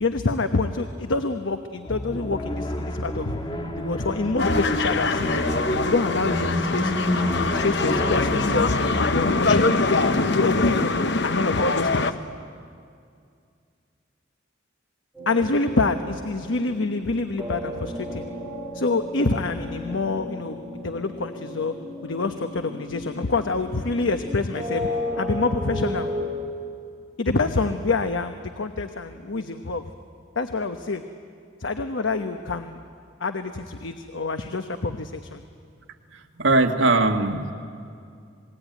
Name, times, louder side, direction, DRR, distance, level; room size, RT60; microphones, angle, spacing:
voice 1, 0.0-3.4 3.7-5.5 5.9-8.8 9.1-11.0 11.2-12.2 15.3-18.3 18.7-21.7 22.0-24.9 25.2-26.1 27.2-29.9 30.3-31.0 31.6-32.8 33.2-35.4, left 3 dB, 80° left, 7 dB, 1.0 m, -26 dB
sound 1, 1.9-9.5, left 1 dB, 25° left, 1.6 m, -29 dB
sound 2, 4.4-12.1, left 3 dB, 60° left, 1.0 m, -23 dB
sound 3, 15.1-26.2, left 1 dB, ahead, 7.5 m, -34 dB
voice 2, 36.1-37.5, right 2 dB, 75° right, 4 dB, 1.9 m, -21 dB
27.0 x 20.5 x 9.3 m, 2.3 s
head